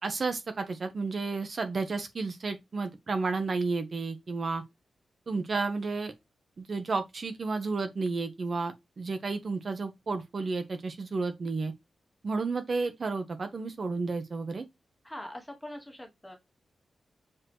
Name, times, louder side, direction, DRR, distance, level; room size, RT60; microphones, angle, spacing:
voice 1, 0.0-4.6 5.3-6.1 6.6-11.7 12.2-14.6, right 3 dB, 45° right, 1.1 m, -32 dB
voice 2, 15.0-16.4, left 1 dB, 10° left, 1.8 m, -42 dB
7.3 x 4.3 x 3.2 m
wide cardioid pair, 140°, 0 cm